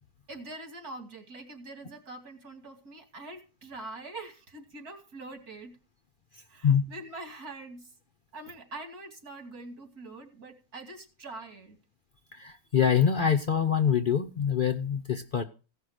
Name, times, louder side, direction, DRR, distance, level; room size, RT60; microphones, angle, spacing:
voice 1, 0.3-5.8 6.5-7.9 8.3-11.8, right 2 dB, 85° right, 4 dB, 3.0 m, -44 dB
voice 2, 12.3-15.4, left 7 dB, 55° left, 6 dB, 0.6 m, -25 dB
16.0 x 5.7 x 6.4 m, 0.35 s
omnidirectional pair, 1.6 m